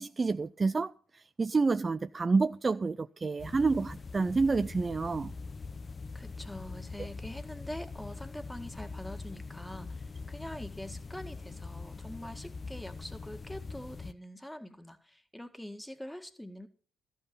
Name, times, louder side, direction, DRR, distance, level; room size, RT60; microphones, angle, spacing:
voice 1, 0.0-5.3, right 4 dB, 30° right, 0.4 m, -29 dB
sound 1, 3.4-14.1, left 4 dB, 35° left, 0.8 m, -43 dB
voice 2, 6.1-16.7, left 1 dB, 5° left, 1.8 m, -44 dB
14.0 x 5.7 x 7.2 m
hypercardioid pair, 50°, 0 cm